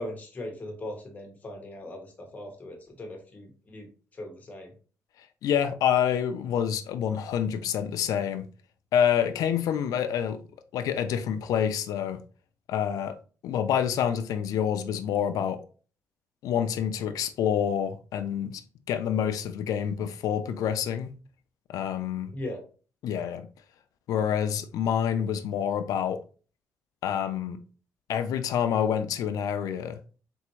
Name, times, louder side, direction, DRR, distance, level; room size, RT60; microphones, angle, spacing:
voice 1, 0.0-4.7 22.3-22.6, left 1 dB, 25° left, 1.2 m, -39 dB
voice 2, 5.4-8.5 8.9-10.4 10.7-12.2 12.7-13.2 13.4-15.6 16.4-18.6 18.9-21.1 21.7-22.3 23.0-23.5 24.1-26.2 27.0-27.6 28.1-30.0, left 9 dB, 80° left, 0.5 m, -27 dB
4.2 x 3.5 x 3.1 m
cardioid pair, 155°, 6 cm